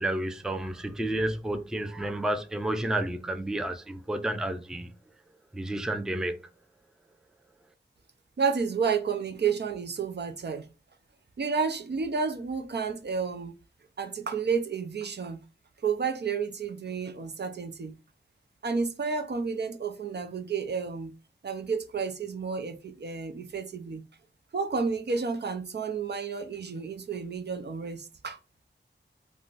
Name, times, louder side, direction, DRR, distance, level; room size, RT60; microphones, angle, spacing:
voice 1, 0.0-4.9 5.5-6.4, right 1 dB, 5° right, 0.4 m, -31 dB
voice 2, 8.4-10.7 11.4-13.5 14.0-15.4 15.8-17.9 18.6-21.1 21.4-24.0 24.5-28.4, right 5 dB, 60° right, 0.5 m, -31 dB
3.6 x 2.1 x 2.4 m
wide cardioid pair, 50°, 19 cm